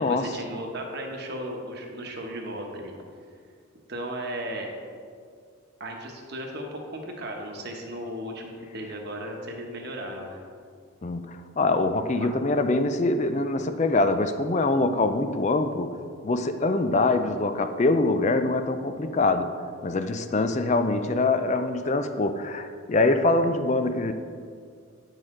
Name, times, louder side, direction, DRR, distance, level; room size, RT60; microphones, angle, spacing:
voice 1, 0.0-2.9 3.9-4.7 5.8-10.4 12.1-12.3, right 1 dB, 50° right, 1 dB, 1.1 m, -35 dB
voice 2, 11.0-16.0 16.2-19.6 19.8-24.1, left 2 dB, 35° left, 9 dB, 0.4 m, -24 dB
9.9 x 6.5 x 3.7 m, 2.2 s
head